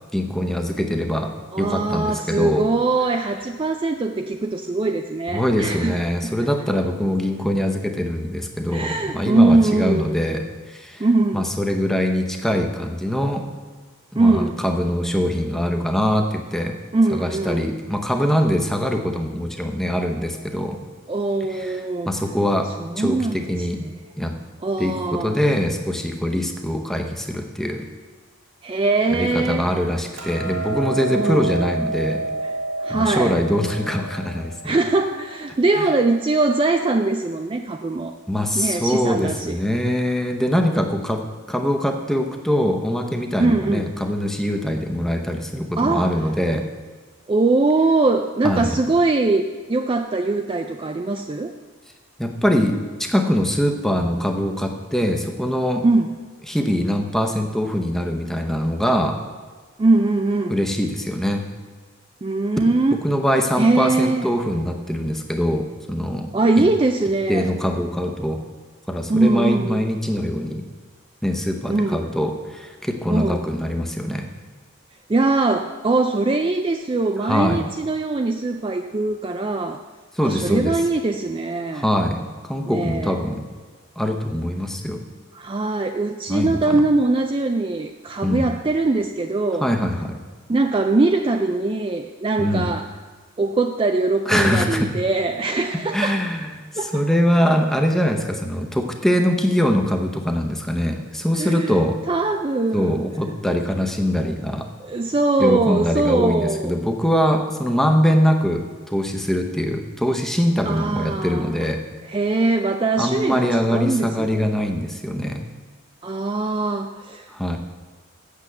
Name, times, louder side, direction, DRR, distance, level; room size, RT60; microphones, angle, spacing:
voice 1, 0.1-2.6 5.3-11.1 11.3-13.5 14.1-16.8 17.1-20.8 21.5-22.7 23.0-23.8 24.2-24.3 24.8-27.9 29.1-32.3 32.9-34.7 35.8-35.9 38.3-41.2 41.5-46.7 48.4-48.8 52.2-55.8 56.5-59.2 60.5-61.5 63.0-66.7 67.3-68.4 68.9-70.6 71.2-74.3 77.2-77.7 80.1-80.8 81.7-83.4 84.0-85.0 86.3-86.8 88.2-88.5 89.6-90.2 92.4-92.7 94.3-94.9 95.9-102.0 102.7-104.7 105.4-111.8 113.0-115.5 117.3-117.6, equal, ahead, 3 dB, 0.7 m, -23 dB
voice 2, 1.5-6.3 8.7-10.2 11.0-11.5 14.2-14.6 16.9-17.7 21.1-22.1 22.8-24.0 24.6-25.4 28.6-29.7 31.1-31.4 32.4-32.5 32.8-33.4 34.6-38.1 38.5-39.6 43.4-43.9 45.8-46.1 47.3-51.5 55.8-56.1 59.8-60.6 62.2-63.0 63.6-64.3 66.3-67.5 69.1-69.8 71.7-72.1 73.1-73.4 75.1-79.8 80.2-81.9 82.7-83.1 85.3-89.7 90.5-92.9 93.4-96.2 96.8-97.1 101.4-101.8 102.1-103.0 104.8-106.7 110.6-111.7 112.1-114.4 116.0-117.3, right 3 dB, 25° right, 6 dB, 0.3 m, -21 dB
Hammer, 30.2-36.4, right 3 dB, 85° right, 2.0 m, -30 dB
8.4 x 6.9 x 7.7 m, 1.4 s
head